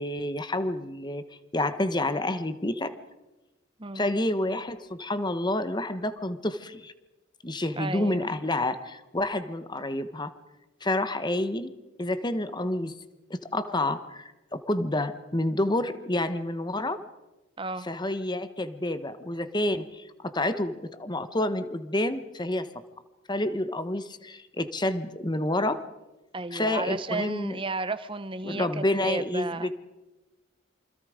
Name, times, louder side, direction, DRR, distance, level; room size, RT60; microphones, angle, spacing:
voice 1, 0.0-2.9 3.9-6.9 7.4-10.3 10.8-11.7 12.0-13.0 13.3-17.0 17.8-22.7 23.3-25.8 26.5-27.6 28.4-29.7, left 1 dB, 20° left, 11 dB, 1.2 m, -29 dB
voice 2, 7.8-8.3 17.6-17.9 26.3-29.7, right 3 dB, 25° right, 13 dB, 1.0 m, -33 dB
27.5 x 25.5 x 5.1 m, 1.1 s
head